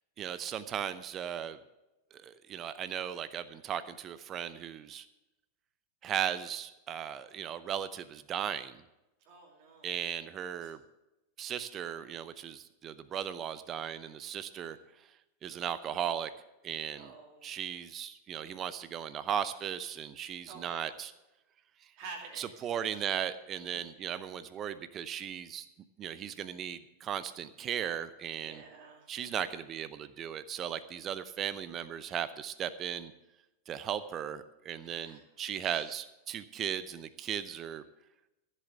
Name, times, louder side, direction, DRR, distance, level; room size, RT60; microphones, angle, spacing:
voice 1, 0.2-1.6 2.1-5.0 6.0-8.8 9.8-10.8 11.4-15.1 15.4-16.3 16.6-17.1 17.4-21.1 21.8-21.9 22.4-25.7 26.0-28.6 29.1-33.1 33.7-37.8, right 9 dB, 30° right, 14 dB, 0.7 m, -37 dB
voice 2, 9.2-9.9 10.6-10.7 14.7-14.9 17.0-17.6 20.5-20.9 22.0-22.9 23.7-23.8 28.3-29.1 34.8-35.2 35.6-35.9, right 4 dB, 45° right, -1 dB, 2.7 m, -50 dB
14.5 x 7.6 x 7.0 m, 0.96 s
figure-of-eight pair, 90°, 0 cm